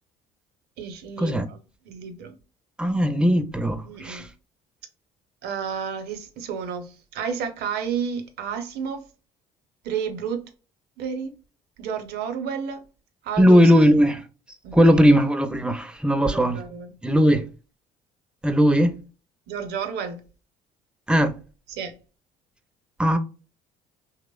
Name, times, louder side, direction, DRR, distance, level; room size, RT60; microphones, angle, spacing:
voice 1, 0.8-1.6 1.8-2.4 3.8-4.3 5.4-9.1 9.8-10.5 11.0-11.3 11.8-12.9 13.2-13.7 14.6-15.0 16.2-17.0 19.5-20.3 21.7-22.0, right 7 dB, 70° right, 0.6 m, -31 dB
voice 2, 2.8-4.2 13.4-14.2 14.7-16.6 17.0-17.5 18.4-19.0 21.1-21.3 23.0-23.2, equal, 5° right, 0.4 m, -18 dB
2.9 x 2.0 x 2.2 m
supercardioid pair, 75°, 17 cm